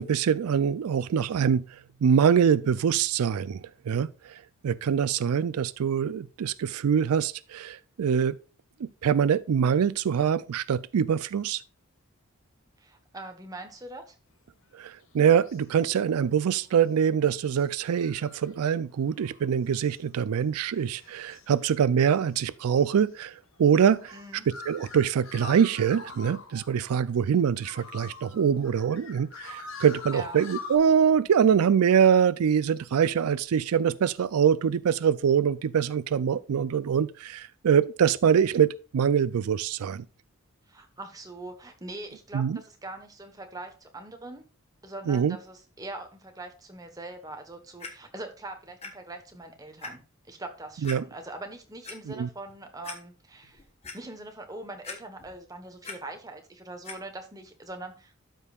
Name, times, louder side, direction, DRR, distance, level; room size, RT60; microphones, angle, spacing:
voice 1, 0.0-8.4 8.8-11.6 14.7-24.1 24.7-40.0 42.3-42.6 45.1-45.4 50.8-51.0 52.1-52.3, right 7 dB, 85° right, 0.4 m, -24 dB
voice 2, 12.8-14.1 24.1-24.5 30.1-30.4 40.7-44.5 44.8-50.0 50.3-53.6 53.9-58.1, right 2 dB, 15° right, 1.1 m, -42 dB
sound 1, 14.8-16.2 16.6-30.8, left 4 dB, 65° left, 1.2 m, -45 dB
Clock, 47.8-47.9 48.8-48.9 49.3-49.4 49.8-49.9 50.8-51.0 51.6-52.0 52.5-52.6 52.8-53.0 53.4-54.0 54.8-55.4 55.6-56.0 56.8-57.0 57.7-57.8, left 4 dB, 30° left, 1.2 m, -40 dB
12.5 x 5.3 x 2.4 m
head